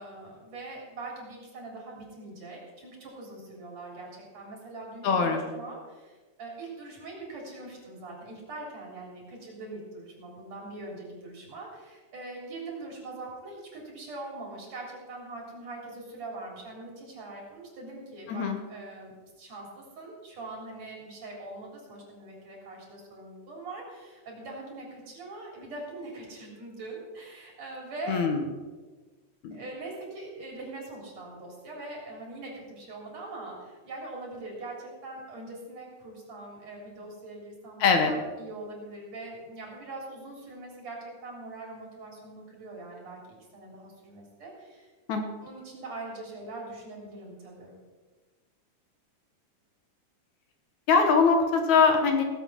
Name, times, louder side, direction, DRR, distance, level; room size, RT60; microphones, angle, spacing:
voice 1, 0.0-28.3 29.5-44.9 45.4-47.7, right 2 dB, 55° right, -2 dB, 4.6 m, -42 dB
voice 2, 5.0-5.4 18.3-18.6 28.1-28.4 29.4-29.6 37.8-38.1 45.1-45.3 50.9-52.2, left 5 dB, 70° left, 4 dB, 2.6 m, -22 dB
18.0 x 8.0 x 5.7 m, 1.3 s
omnidirectional pair, 3.6 m